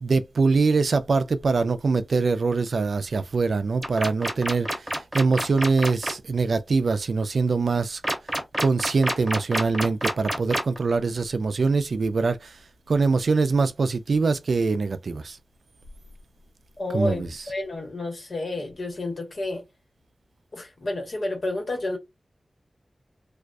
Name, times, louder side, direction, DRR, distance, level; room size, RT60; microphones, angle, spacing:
voice 1, 0.0-4.9 5.1-8.0 8.6-12.5 12.9-15.4 16.9-17.3, right 4 dB, 80° right, 0.3 m, -23 dB
sound 1, 3.8-6.1 8.0-10.8, right 1 dB, 15° right, 1.0 m, -27 dB
voice 2, 16.8-19.7 20.5-22.0, left 2 dB, 70° left, 1.2 m, -30 dB
2.3 x 2.2 x 2.5 m
cardioid pair, 45°, 0 cm